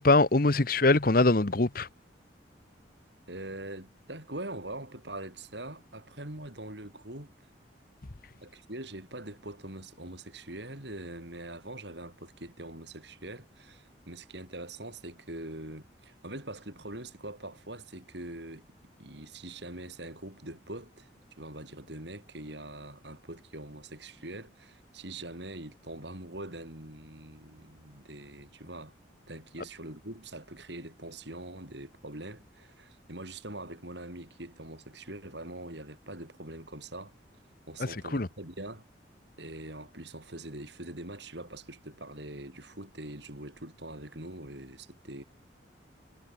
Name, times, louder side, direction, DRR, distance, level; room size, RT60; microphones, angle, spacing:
voice 1, 0.0-1.9 38.1-38.3, left 2 dB, 50° left, 1.0 m, -22 dB
voice 2, 3.3-7.3 8.4-18.7 19.0-21.1 21.4-28.9 29.3-37.1 37.7-38.8 39.4-45.2, right 1 dB, 65° right, 6.6 m, -43 dB
head